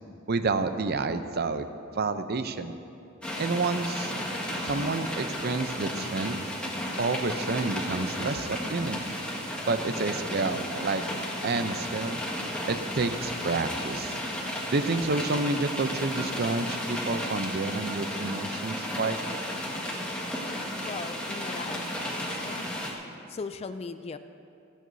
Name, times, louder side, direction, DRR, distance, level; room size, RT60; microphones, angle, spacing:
voice 1, 0.3-1.7 1.9-2.7 3.4-4.1 4.6-6.4 7.0-9.0 9.7-11.0 11.4-12.2 12.7-14.2 14.7-19.4, right 3 dB, 50° right, 9 dB, 0.6 m, -29 dB
sound 1, 3.2-22.9, equal, 5° left, 1.7 m, -34 dB
voice 2, 20.8-22.7 23.3-24.2, left 4 dB, 30° left, 10 dB, 0.4 m, -38 dB
27.5 x 9.2 x 2.7 m, 2.6 s
head